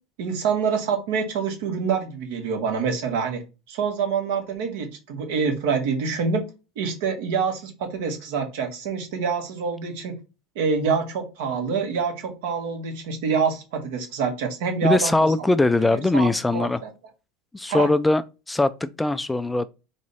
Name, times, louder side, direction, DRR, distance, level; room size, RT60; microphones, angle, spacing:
voice 1, 0.2-3.4 3.7-6.4 6.7-10.1 10.5-15.5 15.9-16.9 17.7-17.9, right 5 dB, 75° right, 1.6 m, -26 dB
voice 2, 14.8-16.8 17.5-18.2 18.5-19.7, left 2 dB, 10° left, 0.3 m, -21 dB
3.6 x 3.0 x 4.2 m
supercardioid pair, 115°, 0 cm